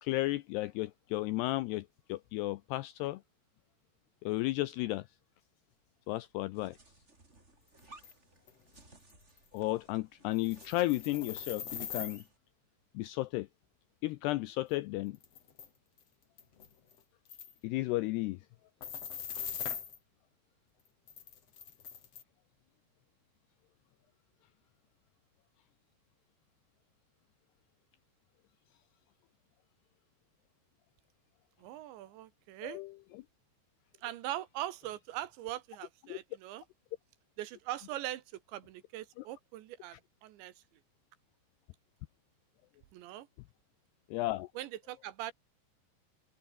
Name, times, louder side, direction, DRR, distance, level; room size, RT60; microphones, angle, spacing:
voice 1, 0.0-3.2 4.2-5.1 6.1-6.8 9.5-12.2 12.9-13.5 14.0-15.2 17.6-18.4 32.6-32.9 36.1-36.2 39.2-39.3 44.1-44.5, left 18 dB, 85° left, 2.4 m, -33 dB
sound 1, 6.5-12.4, right 2 dB, 15° right, 3.5 m, -60 dB
sound 2, 8.0-8.1 8.5-8.6 9.1-9.2 9.4-9.6 10.3-12.2 14.7-14.8 15.1-15.7 16.0-16.1 16.4-17.0 17.3-17.5 18.8-20.0 21.1-22.2, left 7 dB, 40° left, 2.8 m, -41 dB
voice 2, 31.6-32.8 34.0-36.6 37.4-40.5 42.9-43.3 44.6-45.3, right 14 dB, 75° right, 3.5 m, -41 dB
omnidirectional pair, 5.4 m